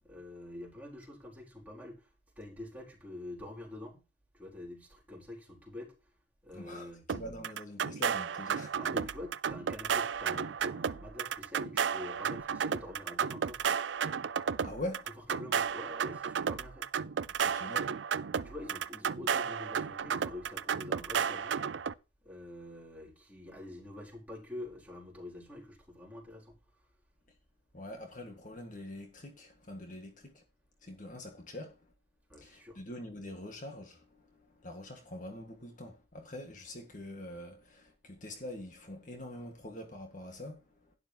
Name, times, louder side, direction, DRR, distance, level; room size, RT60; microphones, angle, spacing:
voice 1, 0.0-2.1 2.4-4.0 4.3-6.1 6.4-7.1 8.7-13.7 15.0-16.9 18.3-21.6 22.2-26.6 32.3-32.8, left 1 dB, 10° right, 4.5 m, -46 dB
voice 2, 6.5-8.8 14.6-15.1 17.4-17.9 27.7-30.4 30.8-31.9 32.4-40.9, left 1 dB, 45° left, 1.8 m, -44 dB
sound 1, 7.1-21.9, right 7 dB, 80° right, 0.5 m, -33 dB
12.0 x 10.5 x 3.0 m
head